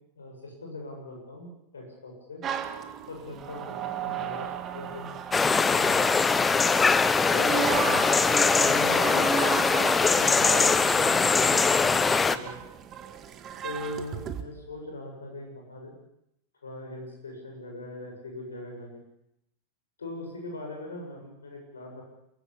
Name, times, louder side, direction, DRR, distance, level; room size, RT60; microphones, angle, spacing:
voice 1, 0.2-2.4 3.1-5.1 5.6-6.3 7.3-9.3 10.1-12.6 13.6-15.9 16.6-19.0 20.0-22.0, left 2 dB, 70° left, 1 dB, 7.4 m, -40 dB
sound 1, 2.4-6.4 7.3-14.4, right 8 dB, 30° right, 2.1 m, -35 dB
sound 2, 5.3-12.4, left 4 dB, 15° left, 1.1 m, -22 dB
28.0 x 16.5 x 8.6 m, 0.80 s
figure-of-eight pair, 90°, 0 cm